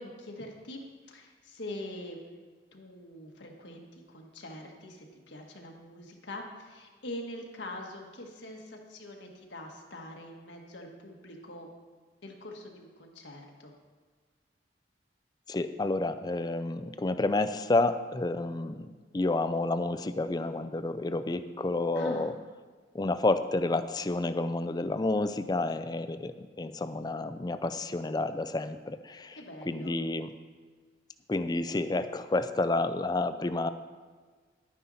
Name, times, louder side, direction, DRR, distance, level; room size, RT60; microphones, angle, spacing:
voice 1, 0.0-2.2 2.7-11.7 12.2-13.7 21.9-22.3 29.4-29.9, left 1 dB, 80° left, 1 dB, 1.7 m, -44 dB
voice 2, 15.5-18.9 19.1-22.3 22.9-29.4 29.7-30.3 31.3-33.7, left 2 dB, 20° left, 11 dB, 0.4 m, -30 dB
11.5 x 9.4 x 4.2 m, 1.5 s
head